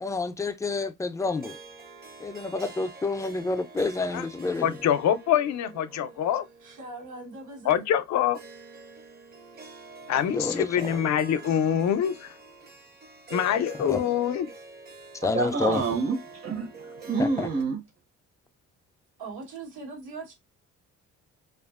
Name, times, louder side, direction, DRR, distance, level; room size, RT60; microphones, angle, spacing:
voice 1, 0.0-1.6 2.2-4.7 10.3-10.9 13.9-14.0 15.2-15.8 17.2-17.5, left 3 dB, 10° left, 0.3 m, -29 dB
Harp, 1.2-17.6, right 3 dB, 35° right, 0.6 m, -46 dB
voice 2, 4.6-6.4 7.7-8.4 10.1-12.3 13.3-14.5, left 9 dB, 65° left, 0.5 m, -25 dB
voice 3, 6.6-7.9 19.2-20.3, right 3 dB, 80° right, 1.2 m, -41 dB
voice 4, 15.3-17.8, right 4 dB, 55° right, 0.9 m, -28 dB
2.6 x 2.4 x 2.4 m
cardioid pair, 90°, 30 cm